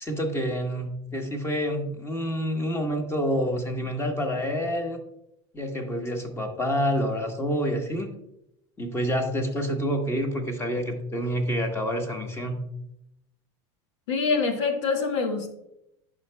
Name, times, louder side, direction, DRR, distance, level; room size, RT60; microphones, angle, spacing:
voice 1, 0.0-5.0 5.5-8.1 8.8-12.6, equal, 15° left, 4 dB, 1.2 m, -28 dB
voice 2, 14.1-15.5, left 4 dB, 90° left, 6 dB, 1.2 m, -25 dB
11.0 x 5.1 x 2.2 m, 0.81 s
supercardioid pair, 110°, 15 cm